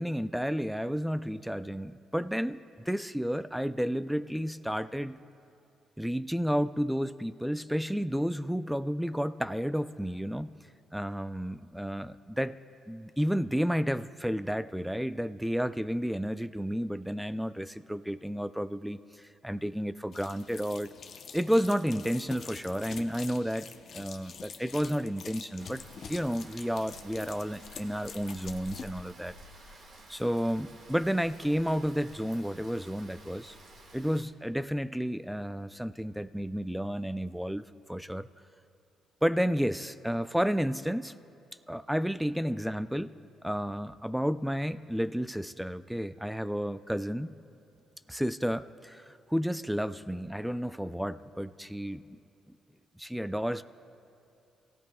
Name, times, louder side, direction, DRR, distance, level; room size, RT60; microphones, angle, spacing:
voice 1, 0.0-5.2 6.0-10.5 10.9-12.6 12.9-20.9 21.3-25.8 26.1-29.3 30.1-33.6 33.9-38.3 39.2-41.1 41.7-43.1 43.4-47.3 48.1-52.2 53.0-53.6, equal, ahead, 13 dB, 0.4 m, -31 dB
sound 1, 20.1-28.9, left 6 dB, 55° left, 0.8 m, -46 dB
Rain, 25.6-34.2, right 1 dB, 60° right, 1.8 m, -51 dB
26.5 x 16.0 x 2.3 m, 2.6 s
cardioid pair, 90°, 0 cm